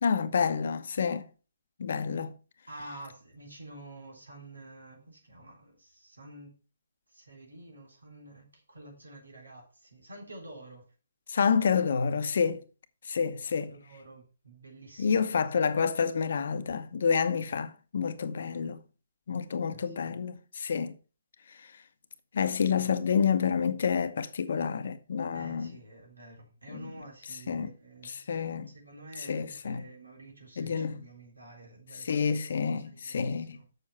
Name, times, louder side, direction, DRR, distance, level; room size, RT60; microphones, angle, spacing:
voice 1, 0.0-1.3 1.8-2.3 11.3-12.6 13.1-13.7 15.0-18.8 19.3-21.0 22.3-25.8 26.7-26.9 27.5-27.7 28.0-28.7 29.2-29.9 30.6-31.1 31.9-33.6, left 6 dB, 60° left, 0.9 m, -29 dB
voice 2, 2.7-6.5 7.1-10.8 11.8-11.9 13.4-15.3 19.7-20.1 25.3-32.6 32.9-33.7, right 2 dB, 90° right, 3.5 m, -49 dB
6.9 x 6.8 x 5.5 m
figure-of-eight pair, 135°, 0 cm